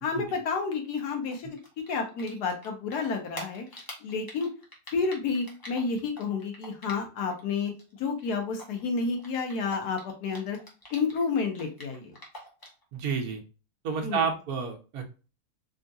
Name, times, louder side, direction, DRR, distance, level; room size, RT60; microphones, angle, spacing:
voice 1, 0.0-4.5 4.9-7.7 8.0-10.6 10.9-12.1 14.0-14.3, left 4 dB, 85° left, 3 dB, 1.3 m, -30 dB
Typing, 1.2-2.7 2.9-7.4 7.7-11.2 11.5-12.8, equal, 25° left, 0.4 m, -45 dB
voice 2, 12.9-13.4 13.8-15.1, right 6 dB, 70° right, 2 dB, 1.2 m, -30 dB
3.6 x 2.4 x 2.6 m, 0.34 s
omnidirectional pair, 1.7 m